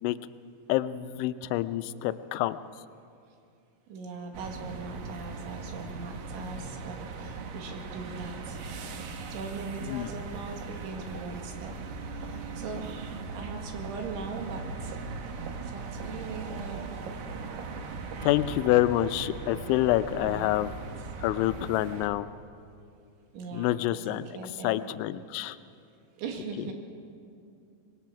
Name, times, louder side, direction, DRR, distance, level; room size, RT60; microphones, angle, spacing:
voice 1, 0.7-2.6 9.8-10.1 18.2-20.7 21.2-22.3 23.5-24.3 24.6-25.6, left 14 dB, 90° left, 13 dB, 3.0 m, -27 dB
voice 2, 3.9-8.6 9.3-11.7 12.2-15.0 15.7-16.9 20.2-20.6 23.3-23.8 24.1-24.8 26.2-26.7, right 4 dB, 90° right, 2 dB, 4.4 m, -40 dB
sound 1, 4.3-22.1, right 4 dB, 65° right, 2.5 m, -39 dB
25.0 x 21.0 x 5.8 m, 2.5 s
omnidirectional pair, 5.3 m